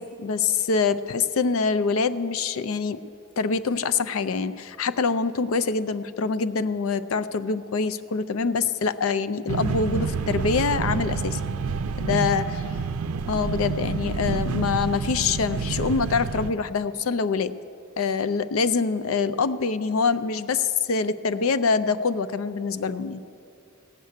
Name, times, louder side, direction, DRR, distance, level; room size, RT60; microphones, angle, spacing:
voice 1, 0.0-3.0 3.4-11.4 12.0-12.6 13.3-17.5 18.0-23.2, left 5 dB, 75° left, 14 dB, 0.5 m, -25 dB
sound 1, 9.5-16.5, right 5 dB, 85° right, 0.4 m, -28 dB
16.0 x 6.5 x 9.1 m, 2.7 s
head